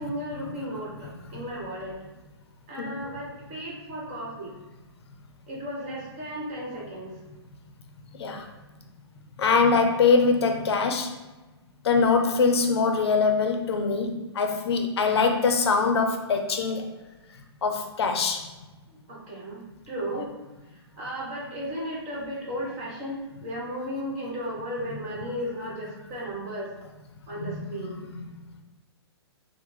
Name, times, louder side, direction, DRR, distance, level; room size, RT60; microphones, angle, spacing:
voice 1, 0.0-2.0 2.7-4.5 5.5-7.1 18.9-19.6 19.9-20.3 21.0-26.7 27.3-28.0, equal, 35° right, -5 dB, 1.1 m, -35 dB
voice 2, 1.0-1.4 2.8-3.0 8.1-8.5 9.4-11.1 11.8-16.9 17.6-18.5 20.1-20.2 27.4-28.2, left 4 dB, 70° left, 5 dB, 0.5 m, -23 dB
3.3 x 2.1 x 3.2 m, 1.1 s
hypercardioid pair, 135°, 14 cm